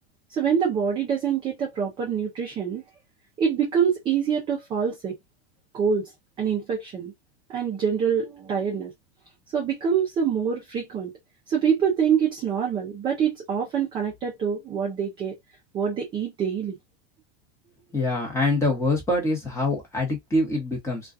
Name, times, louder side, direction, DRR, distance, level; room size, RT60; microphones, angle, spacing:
voice 1, 0.3-2.8 3.4-5.2 5.7-6.0 6.4-7.1 7.5-8.9 9.5-11.1 11.5-15.4 15.7-16.8, right 7 dB, 15° right, 0.4 m, -25 dB
voice 2, 17.9-21.0, left 2 dB, 10° left, 0.9 m, -24 dB
2.4 x 2.2 x 2.4 m
supercardioid pair, 150°, 34 cm